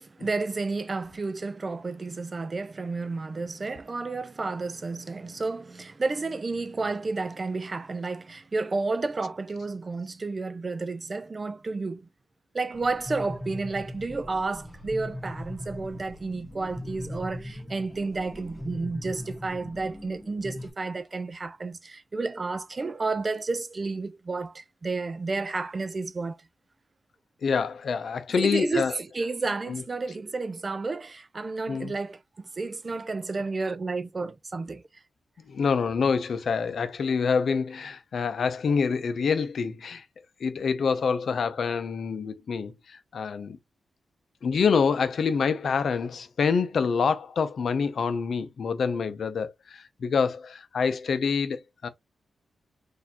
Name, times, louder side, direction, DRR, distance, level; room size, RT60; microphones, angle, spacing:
voice 1, 0.0-12.1 12.5-26.4 28.4-34.8, right 3 dB, 40° right, 0.4 m, -31 dB
sound 1, 12.7-20.7, left 1 dB, 20° left, 1.3 m, -40 dB
voice 2, 27.4-28.9 29.7-29.8 31.7-31.9 35.5-40.0 40.4-43.6 44.4-51.9, left 5 dB, 70° left, 0.6 m, -26 dB
4.2 x 2.6 x 2.8 m
cardioid pair, 75°, 0 cm